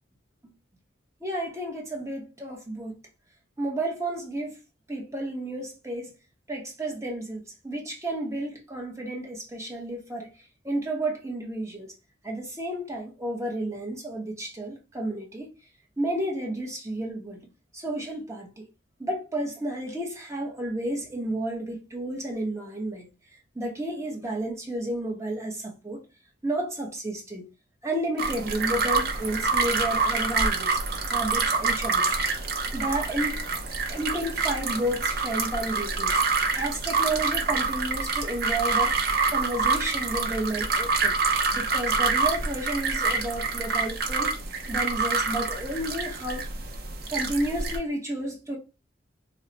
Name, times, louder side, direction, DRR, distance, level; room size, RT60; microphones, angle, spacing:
voice 1, 1.2-3.0 3.6-4.6 4.9-6.1 6.5-10.3 10.6-11.9 12.2-15.5 16.0-17.5 17.7-18.7 19.0-23.1 23.5-26.0 26.4-27.5 27.8-32.4 32.7-33.5 33.9-36.2 36.6-39.0 39.3-41.2 41.5-44.3 44.7-46.4 47.1-48.6, right 1 dB, 15° right, 0.9 m, -31 dB
sound 1, 28.2-47.8, right 4 dB, 55° right, 0.6 m, -27 dB
3.0 x 2.1 x 3.9 m
head